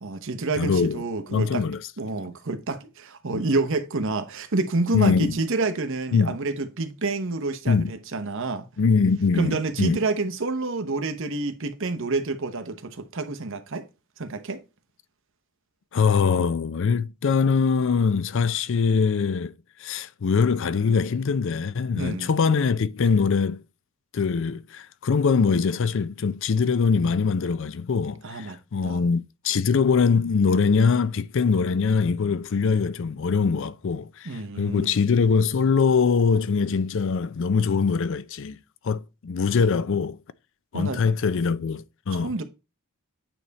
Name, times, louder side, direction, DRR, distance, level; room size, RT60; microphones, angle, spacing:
voice 1, 0.0-1.6 2.0-8.7 9.3-13.8 14.2-14.6 22.0-22.3 28.2-28.6 28.8-29.0 34.2-35.0 40.7-41.1 42.1-42.4, right 3 dB, 65° right, 1.0 m, -28 dB
voice 2, 0.6-1.0 1.3-1.8 3.3-3.4 4.9-5.4 6.1-6.4 7.7-7.9 8.8-10.0 15.9-19.5 19.8-23.6 24.1-38.6 38.8-40.2 40.7-42.3, left 5 dB, 60° left, 0.5 m, -23 dB
9.0 x 3.5 x 4.1 m
head